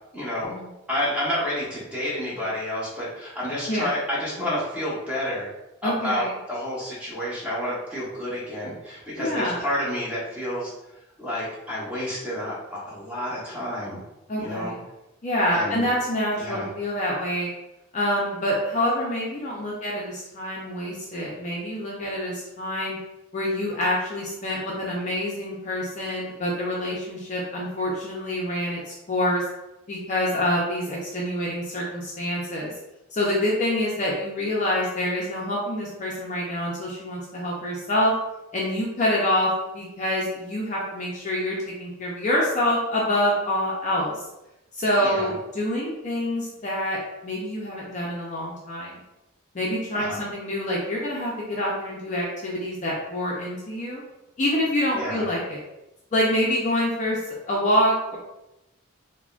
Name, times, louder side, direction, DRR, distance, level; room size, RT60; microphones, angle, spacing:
voice 1, 0.1-0.5 0.9-5.5 5.8-10.7 11.2-14.0 14.3-14.7 15.5-15.9 16.4-16.7 45.0-45.3 49.9-50.2 54.9-55.2, left 1 dB, 5° right, -8 dB, 0.9 m, -29 dB
voice 2, 5.8-6.3 9.2-9.7 14.3-14.8 15.2-17.5 17.9-23.0 23.3-29.4 29.9-32.7 33.1-38.1 38.5-44.2 44.7-49.0 49.5-54.0 54.4-55.6 56.1-57.2 57.5-58.2, left 1 dB, 35° left, -4 dB, 0.4 m, -26 dB
3.6 x 2.1 x 2.3 m, 0.93 s
head